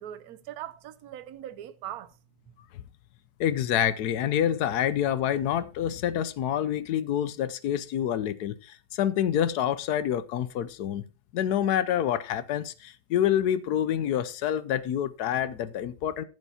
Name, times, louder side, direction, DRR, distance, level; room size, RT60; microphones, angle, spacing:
voice 1, 0.0-2.1, right 11 dB, 70° right, 1.2 m, -40 dB
voice 2, 3.4-11.1 11.3-16.2, left 10 dB, 75° left, 1.2 m, -27 dB
14.0 x 8.1 x 2.8 m
omnidirectional pair, 1.8 m